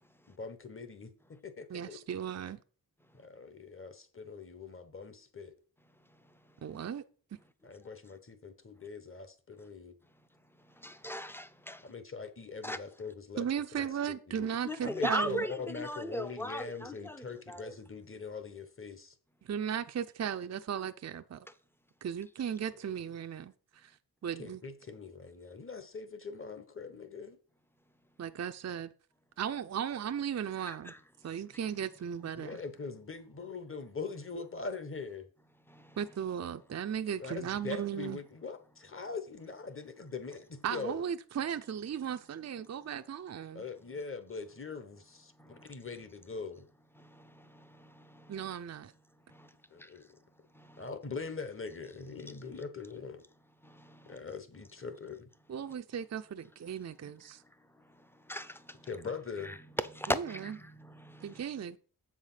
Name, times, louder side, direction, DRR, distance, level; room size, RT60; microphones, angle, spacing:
voice 1, 0.3-1.1 1.4-2.0 3.1-5.5 7.6-9.9 11.8-13.4 13.7-13.9 14.3-14.5 14.8-19.1 22.6-22.7 24.4-27.4 32.3-35.3 37.2-41.0 43.5-46.6 49.7-50.0 50.8-53.2 54.1-55.3 58.9-59.6, left 4 dB, 35° left, 1.1 m, -42 dB
voice 2, 1.7-2.6 6.6-7.0 13.4-15.4 19.4-21.5 22.0-23.9 24.2-24.6 28.2-28.9 29.4-30.9 31.2-32.6 36.0-38.2 40.6-43.6 48.3-48.9 55.5-57.4 60.1-60.6 61.2-61.8, right 8 dB, 45° right, 0.5 m, -36 dB
voice 3, 10.6-11.9 12.6-12.8 14.6-17.7 30.7-31.0 35.7-36.0 45.4-45.8 47.0-48.5 49.3-49.5 49.8-49.9 50.5-50.9 53.6-54.2 57.8-58.9 59.4-61.5, left 1 dB, 5° left, 0.6 m, -39 dB
7.8 x 4.9 x 5.6 m
wide cardioid pair, 110°, 39 cm